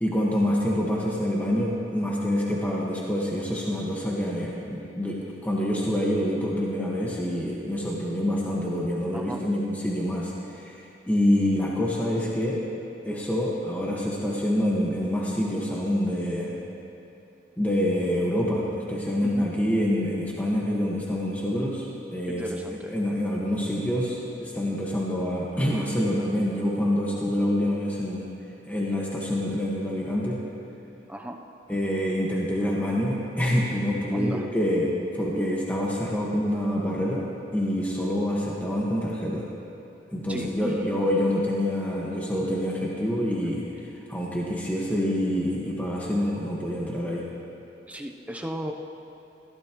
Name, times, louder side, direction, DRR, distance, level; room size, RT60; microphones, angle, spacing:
voice 1, 0.0-12.6 13.0-16.5 17.6-22.5 22.9-28.3 28.7-30.4 31.7-37.3 37.5-39.5 40.1-43.6 44.1-47.2, equal, 10° left, -5 dB, 1.5 m, -26 dB
voice 2, 9.1-9.5 19.2-19.5 22.3-23.0 31.1-31.4 34.1-34.5 40.3-41.0 47.9-48.7, equal, 10° right, 2 dB, 0.7 m, -35 dB
21.5 x 15.5 x 3.1 m, 3.0 s
head